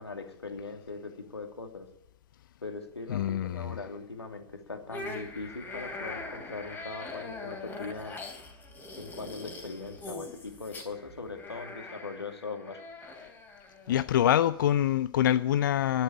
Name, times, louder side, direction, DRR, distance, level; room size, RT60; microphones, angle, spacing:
voice 1, 0.0-1.9 2.6-8.2 9.0-12.8, left 3 dB, 80° left, 5 dB, 2.7 m, -40 dB
voice 2, 3.1-3.8 13.9-16.0, left 11 dB, 50° left, 15 dB, 0.5 m, -25 dB
sound 1, 4.9-14.1, left 3 dB, 15° left, 3.2 m, -42 dB
11.5 x 11.5 x 9.9 m, 0.76 s
figure-of-eight pair, 110°, 14 cm